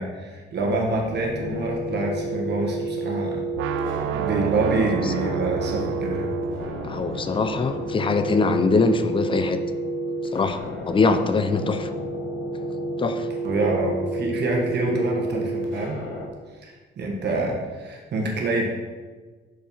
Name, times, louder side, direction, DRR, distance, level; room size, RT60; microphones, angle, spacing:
voice 1, 0.0-3.4 4.2-6.3 11.6-11.7 13.4-16.0 16.6-18.7, right 2 dB, 60° right, -1 dB, 1.5 m, -26 dB
sound 1, 0.7-16.3, right 1 dB, 80° left, 1.2 m, -30 dB
sound 2, 3.6-9.5, right 12 dB, 85° right, 0.4 m, -32 dB
voice 2, 6.9-9.6 10.3-10.6 10.9-11.9 13.0-13.3, left 3 dB, 25° left, 8 dB, 0.6 m, -22 dB
6.4 x 4.5 x 5.6 m, 1.4 s
cardioid pair, 90°, 20 cm